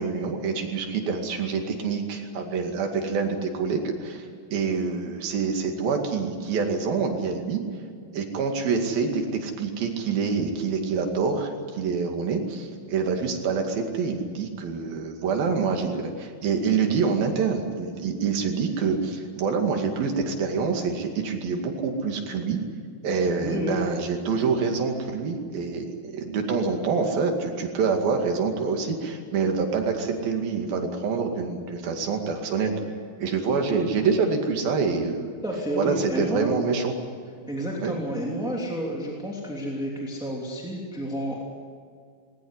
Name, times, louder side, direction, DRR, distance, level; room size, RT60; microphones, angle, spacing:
voice 1, 0.0-7.6 8.1-22.6 23.0-32.9 33.2-35.3 35.8-36.9 37.8-37.9, right 5 dB, 80° right, 3 dB, 4.1 m, -26 dB
voice 2, 23.4-23.8 35.4-36.5 37.5-41.4, equal, ahead, -3 dB, 2.4 m, -30 dB
20.0 x 18.5 x 9.7 m, 2.1 s
omnidirectional pair, 4.1 m